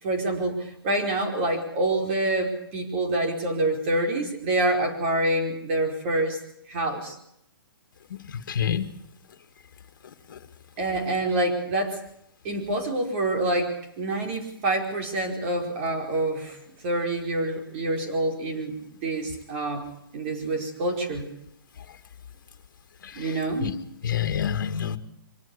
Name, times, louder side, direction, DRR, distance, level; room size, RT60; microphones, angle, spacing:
voice 1, 0.0-6.4 6.7-7.2 10.8-12.0 12.4-16.6 16.8-19.9 20.1-21.3 23.1-23.7, right 2 dB, 30° right, 4 dB, 4.9 m, -27 dB
voice 2, 8.1-8.9 10.3-10.4 23.0-23.8 24.0-25.0, left 8 dB, 55° left, 9 dB, 2.2 m, -28 dB
25.0 x 18.5 x 7.1 m, 0.73 s
hypercardioid pair, 170°, 12 cm